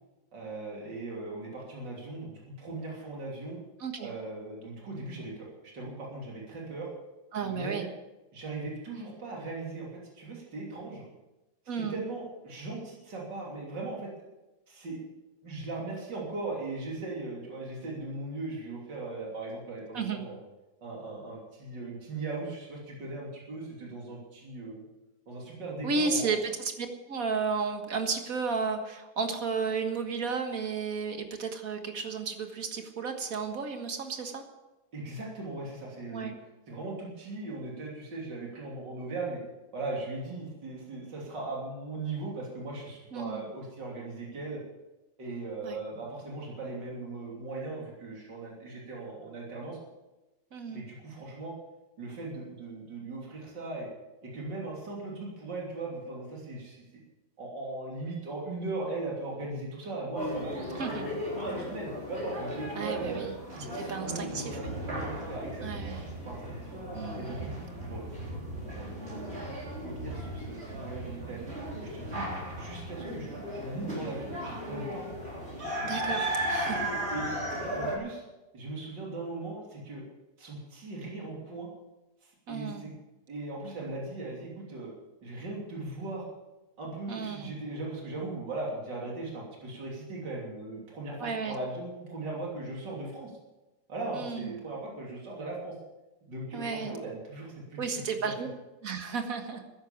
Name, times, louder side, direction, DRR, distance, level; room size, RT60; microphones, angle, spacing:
voice 1, 0.3-3.6 4.0-6.9 7.4-7.9 8.3-11.1 11.8-14.1 14.7-15.0 15.4-20.4 20.8-24.9 25.3-26.4 34.9-36.3 36.7-39.4 39.7-44.6 45.2-49.8 50.7-51.6 52.0-53.9 54.2-56.8 57.4-62.0 62.4-63.2 63.5-66.7 67.2-68.1 68.6-71.5 71.9-72.3 72.6-75.0 77.1-77.3 77.7-78.2 78.5-80.0 80.4-81.7 82.2-82.9 83.3-84.9 85.2-86.3 86.8-93.3 93.9-95.8 96.3-97.8 98.2-98.5, right 2 dB, 65° right, -3 dB, 3.7 m, -39 dB
voice 2, 7.3-7.9 11.7-12.0 19.9-20.2 25.8-34.4 36.1-36.4 43.1-43.5 45.6-45.8 50.5-50.8 60.8-61.1 62.8-63.3 63.7-64.7 65.6-66.1 66.9-67.5 75.8-76.9 82.5-82.9 87.1-87.5 91.2-91.6 94.1-94.6 96.5-96.9 97.8-98.5 98.8-99.6, right 5 dB, 50° right, 6 dB, 1.9 m, -33 dB
sound 1, 60.2-78.0, right 1 dB, 35° right, 4.0 m, -36 dB
14.0 x 10.5 x 7.2 m, 1.0 s
omnidirectional pair, 2.0 m